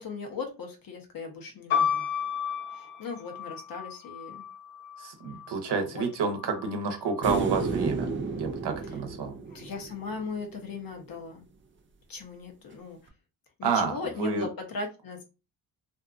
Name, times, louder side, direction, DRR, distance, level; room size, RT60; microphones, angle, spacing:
voice 1, 0.0-2.1 2.7-4.4 5.7-6.0 9.5-11.4 12.1-13.0 13.6-15.2, left 4 dB, 50° left, 3 dB, 0.8 m, -38 dB
sound 1, 1.7-5.5 6.4-7.1, left 8 dB, 80° left, 1.0 m, -32 dB
voice 2, 5.0-8.1 8.4-9.3 13.6-13.9 14.2-14.5, right 5 dB, 65° right, 5 dB, 0.9 m, -29 dB
sound 2, 7.2-10.5 13.1-13.2, right 4 dB, 30° right, 0.4 m, -32 dB
2.6 x 2.4 x 2.4 m, 0.31 s
cardioid pair, 90°, 44 cm